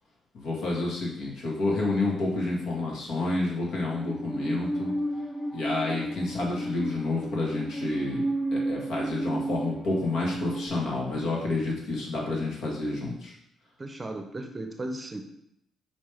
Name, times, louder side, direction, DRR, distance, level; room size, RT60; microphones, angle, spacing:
voice 1, 0.3-4.9 5.5-8.2 8.5-13.3, left 2 dB, 70° left, -3 dB, 1.8 m, -29 dB
Musical instrument, 3.8-10.7, right 1 dB, 20° left, 0.7 m, -32 dB
voice 2, 13.8-15.2, right 2 dB, 25° right, 5 dB, 0.7 m, -36 dB
5.2 x 5.2 x 3.5 m, 0.77 s
cardioid pair, 90°, 0 cm